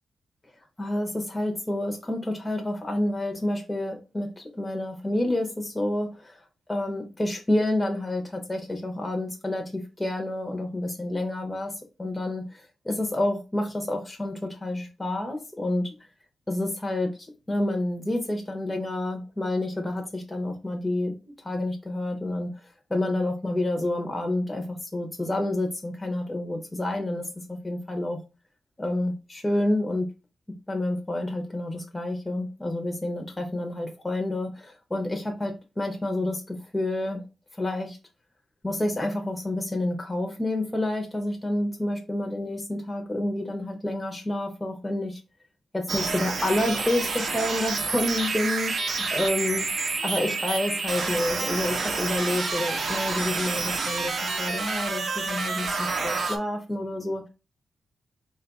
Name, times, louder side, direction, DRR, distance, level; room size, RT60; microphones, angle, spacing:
voice 1, 0.8-6.4 6.7-11.7 12.0-15.9 16.5-22.5 22.9-28.2 28.8-30.1 30.7-37.2 37.6-38.0 38.6-45.2 45.7-48.7 49.0-49.6 50.0-57.3, left 1 dB, 15° left, 0.7 m, -29 dB
sound 1, 45.9-56.4, right 4 dB, 50° right, 0.7 m, -29 dB
4.2 x 2.3 x 3.9 m
wide cardioid pair, 140°, 0 cm